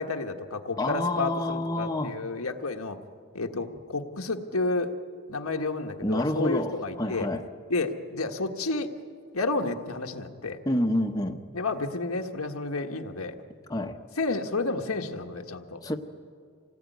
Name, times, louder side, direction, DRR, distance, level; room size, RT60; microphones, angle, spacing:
voice 1, 0.0-3.0 3.3-4.9 5.3-7.3 7.7-8.9 9.3-10.6 11.5-13.3 14.2-15.8, left 3 dB, 90° left, 4 dB, 1.5 m, -31 dB
voice 2, 0.8-2.1 6.0-7.4 10.6-11.4 13.7-14.0 15.8-16.0, left 1 dB, 15° left, 4 dB, 1.0 m, -28 dB
27.5 x 19.0 x 9.4 m, 2.2 s
head